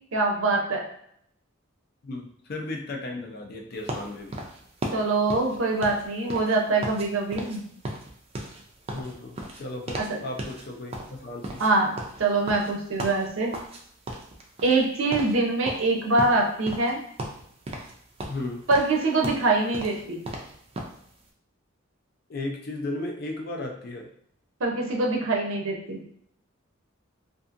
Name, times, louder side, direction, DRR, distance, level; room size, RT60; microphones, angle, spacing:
voice 1, 0.1-0.8 4.9-7.6 10.0-10.2 11.6-13.5 14.6-17.0 18.7-20.2 24.6-26.0, right 2 dB, 75° right, 0 dB, 0.6 m, -24 dB
voice 2, 2.0-4.4 8.9-11.6 18.3-18.6 22.3-24.1, left 2 dB, 50° left, 2 dB, 0.4 m, -35 dB
sound 1, 3.9-7.1 7.3-7.6 7.8-10.1 10.4-10.6 10.9-13.8 14.1-14.9 15.1-15.4 15.6-16.9 17.2-17.9 18.2-21.0, right 1 dB, 30° right, 0.3 m, -36 dB
2.7 x 2.5 x 2.5 m, 0.68 s
head